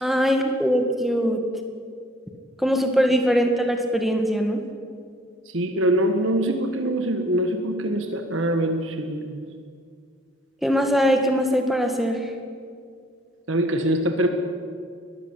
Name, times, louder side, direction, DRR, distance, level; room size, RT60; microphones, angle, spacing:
voice 1, 0.0-1.4 2.6-4.6 10.6-12.2, equal, ahead, 4 dB, 1.9 m, -21 dB
voice 2, 5.5-9.4 13.5-14.3, right 1 dB, 80° right, 6 dB, 1.7 m, -23 dB
21.0 x 14.5 x 9.9 m, 2.2 s
head